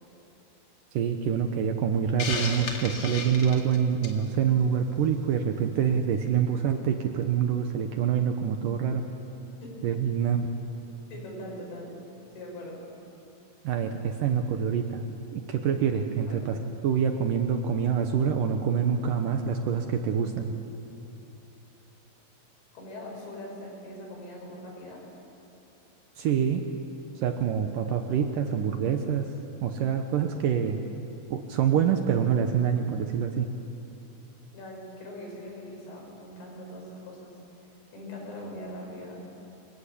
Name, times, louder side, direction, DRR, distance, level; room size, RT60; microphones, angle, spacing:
voice 1, 0.9-9.0 9.8-10.5 13.6-15.0 15.3-16.6 16.8-20.6 26.2-26.6 27.2-29.3 29.6-30.8 31.3-33.5, right 7 dB, 75° right, 6 dB, 2.1 m, -26 dB
Hiss, 2.2-4.3, left 4 dB, 40° left, 2.2 m, -33 dB
voice 2, 11.1-12.0 12.3-12.9 16.3-16.5 22.7-25.1 34.5-37.7 37.9-39.2, left 1 dB, 75° left, -1 dB, 8.3 m, -41 dB
27.5 x 22.0 x 8.5 m, 2.7 s
omnidirectional pair, 5.2 m